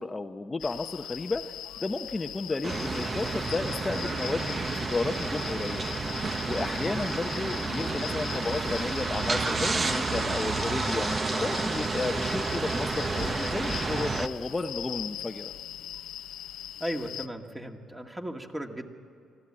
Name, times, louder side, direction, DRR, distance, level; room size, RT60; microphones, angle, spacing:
voice 1, 0.0-1.4 1.8-6.0 6.5-15.5, left 3 dB, 25° left, 5 dB, 0.8 m, -33 dB
sound 1, 0.6-17.3, left 11 dB, 85° left, 0.6 m, -41 dB
sound 2, 2.6-14.3, right 3 dB, 35° right, 1.0 m, -30 dB
voice 2, 16.8-18.8, equal, 10° right, 3 dB, 2.0 m, -36 dB
25.0 x 15.5 x 8.7 m, 2.5 s
cardioid pair, 90°, 0 cm